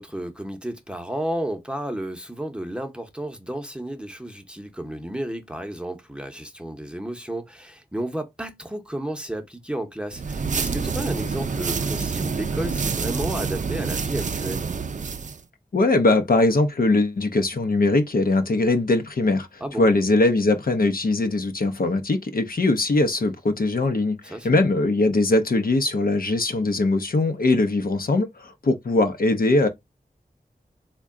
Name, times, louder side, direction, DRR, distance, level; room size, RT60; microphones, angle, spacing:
voice 1, 0.0-14.7 19.6-19.9 24.2-24.6, right 1 dB, 5° right, 0.7 m, -32 dB
sound 1, 10.1-15.4, right 5 dB, 50° right, 0.4 m, -27 dB
voice 2, 15.7-19.5 19.8-29.7, left 2 dB, 65° left, 0.6 m, -21 dB
3.6 x 2.2 x 3.6 m
wide cardioid pair, 55°, 16 cm